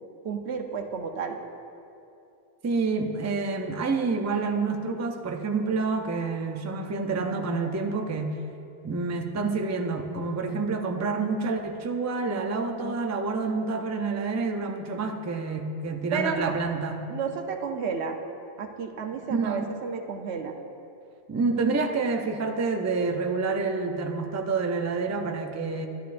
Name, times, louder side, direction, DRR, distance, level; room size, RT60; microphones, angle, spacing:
voice 1, 0.2-1.4 12.7-12.9 16.1-16.5 17.1-18.2 18.6-20.5, right 5 dB, 90° right, 5 dB, 1.0 m, -32 dB
voice 2, 2.6-8.4 8.8-17.0 19.3-19.6 21.3-25.9, right 4 dB, 25° right, 4 dB, 0.3 m, -28 dB
12.0 x 10.5 x 2.5 m, 2.7 s
omnidirectional pair, 1.1 m